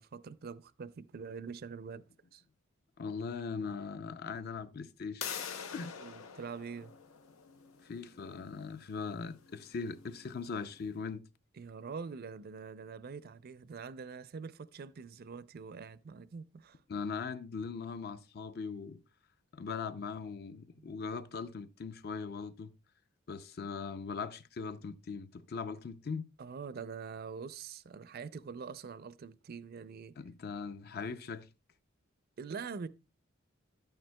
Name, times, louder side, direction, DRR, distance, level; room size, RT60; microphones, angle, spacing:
voice 1, 0.0-2.1 2.3-2.4 6.0-6.9 11.6-16.8 20.8-21.0 26.4-30.2 32.4-32.9, right 5 dB, 50° right, 0.4 m, -44 dB
voice 2, 3.0-5.2 5.7-5.9 7.9-11.2 16.9-19.0 19.5-22.7 23.3-26.2 30.2-31.5, left 5 dB, 50° left, 0.5 m, -40 dB
sound 1, 5.2-10.8, left 7 dB, 90° left, 0.8 m, -46 dB
11.0 x 8.9 x 2.2 m
head